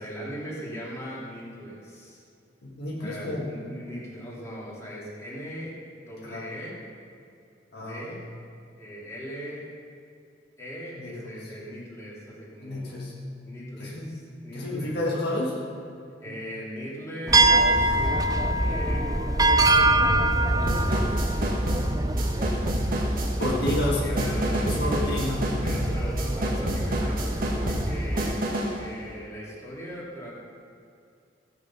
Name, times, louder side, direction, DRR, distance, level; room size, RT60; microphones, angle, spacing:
voice 1, 0.0-2.2 3.0-6.8 7.7-8.2 8.8-9.7 10.6-13.1 13.5-14.9 16.2-20.3 21.3-23.4 23.9-25.1 25.6-30.4, equal, 15° left, -7 dB, 3.0 m, -39 dB
voice 2, 2.6-3.5 6.2-6.4 7.7-8.1 10.9-11.3 12.6-13.1 13.8-14.1 14.5-15.6 16.3-16.4 23.4-24.1 24.7-25.6, left 1 dB, 60° left, -4 dB, 1.8 m, -30 dB
sound 1, 17.3-28.4, right 2 dB, 20° right, 0.5 m, -24 dB
sound 2, 20.7-28.8, right 1 dB, 50° right, 1.7 m, -29 dB
15.0 x 8.5 x 5.7 m, 2.5 s
head